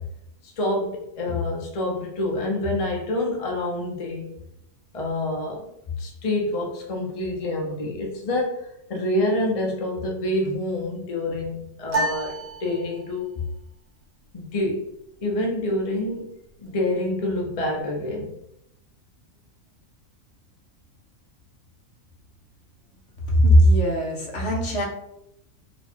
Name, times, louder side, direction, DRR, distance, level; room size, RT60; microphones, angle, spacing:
voice 1, 0.6-4.3 4.9-5.7 6.0-8.6 8.9-12.3 12.6-13.3 14.3-14.8 15.2-16.3 16.6-18.3, left 1 dB, 35° left, 0 dB, 0.7 m, -27 dB
sound 1, 11.9-13.4, right 2 dB, 85° right, 1.6 m, -29 dB
voice 2, 23.2-24.8, equal, 60° left, -1 dB, 1.2 m, -18 dB
4.2 x 2.3 x 4.4 m, 0.79 s
omnidirectional pair, 1.4 m